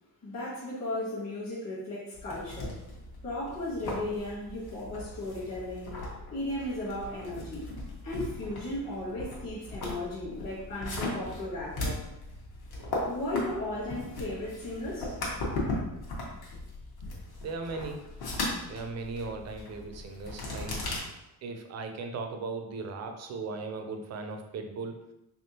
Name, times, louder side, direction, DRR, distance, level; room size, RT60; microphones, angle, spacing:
voice 1, 0.2-2.8 3.2-6.0 6.3-7.6 8.0-12.1 13.1-15.2, left 1 dB, 40° left, -9 dB, 1.1 m, -36 dB
sound 1, 2.1-21.0, left 2 dB, 65° left, 1.1 m, -38 dB
voice 2, 17.4-18.2 18.6-20.9 21.4-25.0, right 3 dB, 45° right, 5 dB, 0.4 m, -37 dB
3.5 x 3.5 x 2.7 m, 0.90 s
cardioid pair, 170°, 40 cm